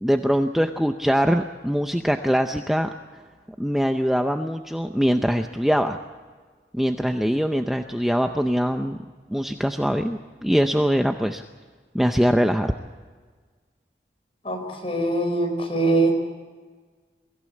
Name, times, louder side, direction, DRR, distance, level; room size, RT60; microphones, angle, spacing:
voice 1, 0.0-3.2 3.6-6.0 6.7-9.0 9.3-11.4 11.9-12.7, equal, ahead, 5 dB, 0.6 m, -22 dB
voice 2, 14.4-16.1, right 2 dB, 35° left, 2 dB, 4.8 m, -23 dB
23.5 x 15.5 x 8.4 m, 1.5 s
head